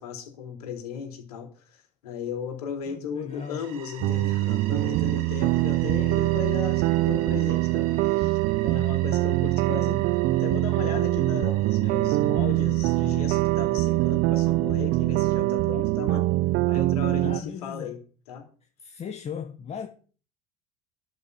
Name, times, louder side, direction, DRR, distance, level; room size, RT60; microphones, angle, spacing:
voice 1, 0.0-10.0 10.3-16.3 16.7-18.0 18.3-18.5, left 7 dB, 75° left, 3.9 m, -36 dB
voice 2, 2.9-3.6 17.2-17.9 18.8-19.9, left 7 dB, 35° left, 1.6 m, -37 dB
sound 1, 3.3-16.0, right 10 dB, 75° right, 1.8 m, -47 dB
sound 2, 4.0-17.4, right 18 dB, 55° right, 0.6 m, -23 dB
12.0 x 6.4 x 8.1 m
hypercardioid pair, 75°, 19 cm